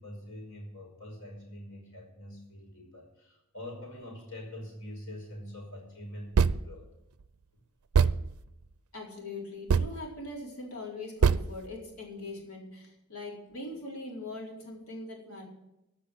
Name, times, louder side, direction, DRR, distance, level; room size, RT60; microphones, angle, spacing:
voice 1, 0.0-6.8, left 1 dB, 60° left, 0 dB, 5.3 m, -44 dB
sound 1, 6.4-6.8 7.2-7.3 7.9-8.4 9.7-9.9 11.2-11.5, right 5 dB, 85° right, 0.5 m, -23 dB
voice 2, 8.9-15.4, left 2 dB, 90° left, -1 dB, 4.0 m, -41 dB
14.5 x 6.1 x 7.7 m, 0.90 s
head